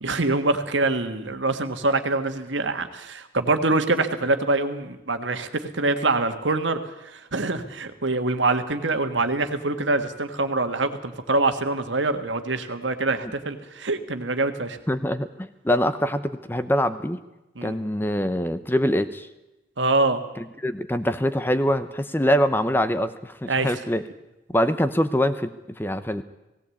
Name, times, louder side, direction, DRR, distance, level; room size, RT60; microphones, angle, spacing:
voice 1, 0.0-6.8 7.0-14.8 17.6-17.8 19.8-20.2 23.5-23.7, right 2 dB, 85° right, 8 dB, 1.6 m, -24 dB
voice 2, 14.9-17.2 17.6-19.3 20.4-24.0 24.5-26.2, equal, 10° left, 11 dB, 0.7 m, -24 dB
18.0 x 17.5 x 8.5 m, 0.97 s
head